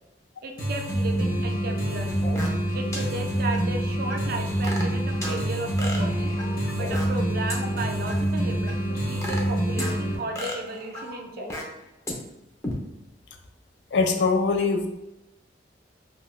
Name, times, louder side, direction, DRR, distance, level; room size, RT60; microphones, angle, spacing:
voice 1, 0.4-2.3 2.7-6.3 6.7-11.5, right 2 dB, 55° right, 3 dB, 0.4 m, -34 dB
sound 1, 0.6-10.2, right 1 dB, 50° left, 0.8 m, -26 dB
sound 2, 2.2-2.7 2.9-3.0 3.5-3.6 4.1-5.4 5.8-7.2 7.5-7.6 8.1-8.2 8.7-9.9 10.4-11.8 12.1-12.2 12.6-12.7, left 1 dB, 15° left, 0.5 m, -34 dB
voice 2, 13.9-14.9, left 4 dB, 75° left, 5 dB, 0.4 m, -22 dB
2.7 x 2.3 x 3.0 m, 0.94 s
head